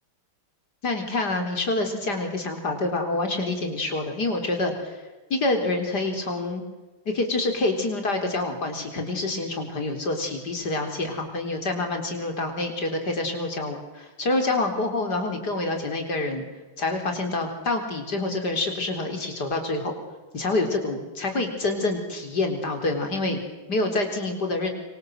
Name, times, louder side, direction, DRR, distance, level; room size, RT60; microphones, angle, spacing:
voice 1, 0.8-5.0 5.3-6.6 7.1-16.5 16.8-19.9 20.3-24.7, left 2 dB, 45° left, 4 dB, 4.6 m, -27 dB
26.0 x 25.5 x 7.9 m, 1.2 s
omnidirectional pair, 2.4 m